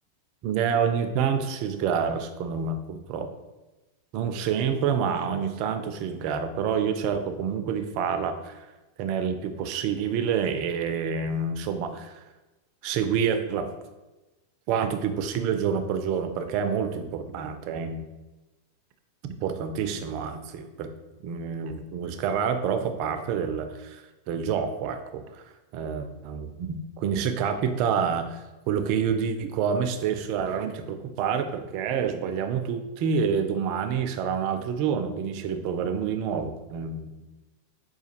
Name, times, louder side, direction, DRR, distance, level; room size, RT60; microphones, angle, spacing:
voice 1, 0.4-3.3 4.1-8.7 9.0-12.2 12.8-13.7 14.7-18.0 19.4-20.9 21.2-25.4 25.7-37.3, right 7 dB, 45° right, 8 dB, 0.4 m, -28 dB
5.0 x 2.2 x 2.9 m, 1.1 s
figure-of-eight pair, 90°, 0 cm